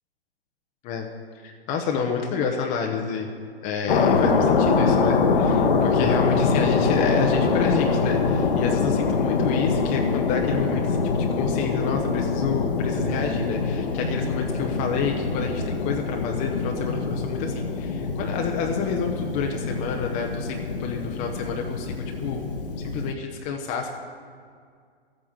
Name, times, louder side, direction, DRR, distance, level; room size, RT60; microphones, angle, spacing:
voice 1, 1.4-3.3 3.6-22.4 22.8-23.9, left 5 dB, 20° left, 2 dB, 0.8 m, -29 dB
sound 1, 3.9-23.1, left 4 dB, 55° left, 1.2 m, -24 dB
13.0 x 8.9 x 6.4 m, 2.1 s
hypercardioid pair, 130°, 32 cm